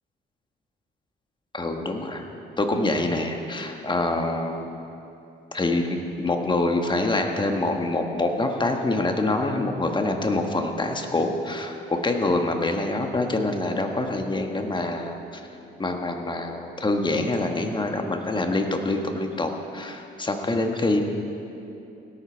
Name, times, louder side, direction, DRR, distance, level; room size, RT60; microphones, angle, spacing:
voice 1, 1.5-2.2 2.6-4.7 5.5-15.2 15.8-21.0, left 2 dB, 25° left, 4 dB, 1.4 m, -25 dB
17.5 x 11.5 x 4.6 m, 2.8 s
cardioid pair, 90°, 20 cm